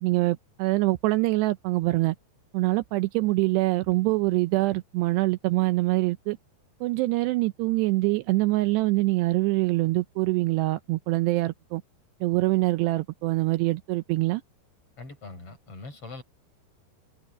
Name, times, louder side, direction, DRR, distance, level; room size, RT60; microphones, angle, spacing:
voice 1, 0.0-2.2 2.5-6.4 6.8-11.8 12.2-14.4, right 20 dB, 80° right, 2.6 m, -24 dB
voice 2, 15.0-16.2, left 3 dB, 30° left, 6.3 m, -42 dB
omnidirectional pair, 5.1 m